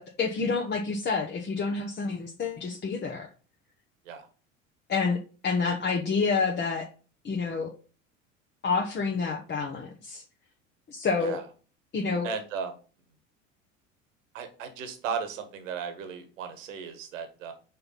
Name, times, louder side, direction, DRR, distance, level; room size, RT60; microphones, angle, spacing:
voice 1, 0.0-3.3 4.9-6.9 7.2-7.7 8.6-10.2 10.9-11.4 11.9-12.3, left 4 dB, 25° left, 1 dB, 1.0 m, -28 dB
voice 2, 12.2-12.7 14.3-17.5, right 6 dB, 75° right, 8 dB, 1.3 m, -35 dB
5.6 x 4.2 x 5.5 m, 0.38 s
hypercardioid pair, 70°, 39 cm